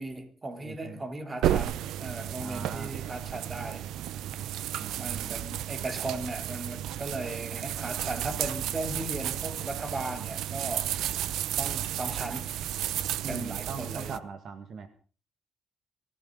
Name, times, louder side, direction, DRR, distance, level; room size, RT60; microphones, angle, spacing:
voice 1, 0.0-3.9 4.9-10.9 11.6-12.6 13.3-14.2, right 2 dB, 25° right, 3.2 m, -37 dB
voice 2, 0.6-1.0 2.4-2.9 4.8-5.4 13.2-14.9, right 5 dB, 60° right, 1.8 m, -40 dB
sound 1, 1.4-14.2, right 12 dB, 85° right, 0.7 m, -33 dB
22.5 x 15.5 x 4.0 m
cardioid pair, 90°, 0 cm